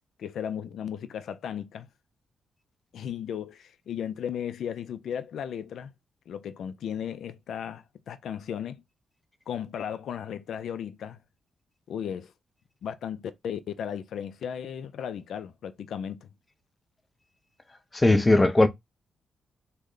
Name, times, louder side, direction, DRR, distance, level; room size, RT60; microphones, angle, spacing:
voice 1, 0.2-1.9 2.9-5.9 6.3-8.8 9.5-11.2 11.9-12.3 12.8-16.3, left 8 dB, 75° left, 0.4 m, -35 dB
voice 2, 17.9-18.7, left 2 dB, 15° left, 0.5 m, -19 dB
3.2 x 2.1 x 3.7 m
cardioid pair, 110°, 0 cm